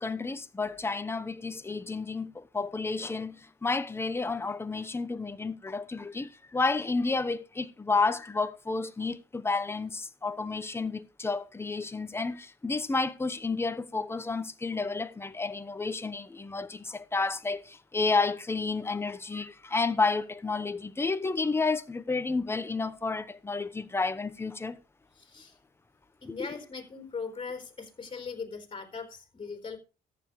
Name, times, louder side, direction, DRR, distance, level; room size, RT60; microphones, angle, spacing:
voice 1, 0.0-24.8 26.4-26.6, left 3 dB, 15° left, 1.0 m, -31 dB
voice 2, 25.2-25.6 26.2-29.8, left 5 dB, 30° left, 4.0 m, -40 dB
14.0 x 9.7 x 3.2 m
cardioid pair, 110°, 17 cm